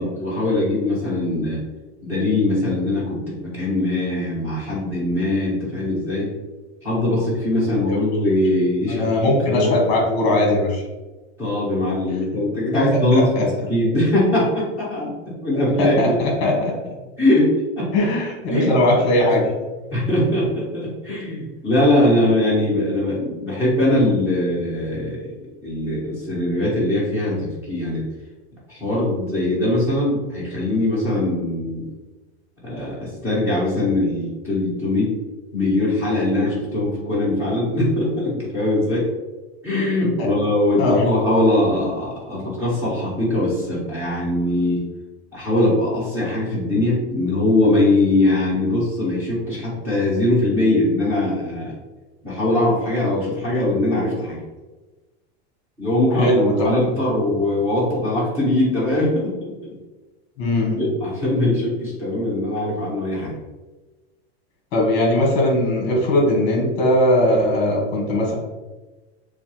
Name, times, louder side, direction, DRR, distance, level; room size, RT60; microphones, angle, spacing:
voice 1, 0.0-1.6 2.0-6.3 6.8-9.1 9.4-9.7 11.4-15.1 15.4-16.2 17.2-17.9 18.5-18.8 19.9-25.3 25.6-28.0 28.7-31.9 32.6-35.1 35.5-39.1 39.6-44.8 45.3-51.7 52.2-54.4 55.8-56.3 56.6-59.8 60.8-63.3, left 1 dB, 5° right, -9 dB, 1.4 m, -21 dB
voice 2, 8.9-10.8 13.1-13.4 15.8-16.8 17.9-19.5 40.2-40.3 40.8-41.0 56.1-56.9 60.4-60.8 64.7-68.3, left 1 dB, 35° left, -1 dB, 1.4 m, -19 dB
6.7 x 2.3 x 3.3 m, 1.2 s
supercardioid pair, 180°, 33 cm